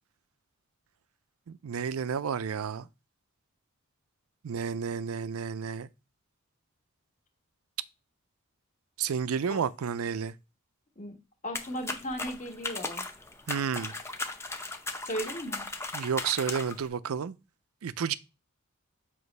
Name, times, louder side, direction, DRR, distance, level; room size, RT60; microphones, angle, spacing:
voice 1, 1.5-2.9 4.4-5.9 9.0-10.3 13.5-13.9 15.9-17.3 17.8-18.1, right 7 dB, 75° right, 0.4 m, -31 dB
voice 2, 11.4-13.0 15.0-15.7, equal, 35° left, 1.3 m, -36 dB
sound 1, 11.5-16.9, left 2 dB, 10° left, 0.7 m, -37 dB
7.8 x 3.0 x 5.3 m
head